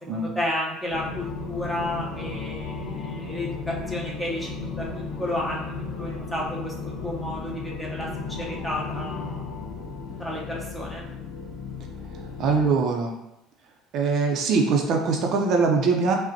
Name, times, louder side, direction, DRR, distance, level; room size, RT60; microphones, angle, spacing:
voice 1, 0.1-9.5 10.2-11.1, left 1 dB, 10° left, -4 dB, 0.8 m, -32 dB
sound 1, 0.9-12.7, left 4 dB, 75° left, 0.8 m, -35 dB
voice 2, 12.4-13.1 13.9-16.1, right 4 dB, 50° right, 2 dB, 0.5 m, -22 dB
4.9 x 2.1 x 2.7 m, 0.86 s
cardioid pair, 140°, 0 cm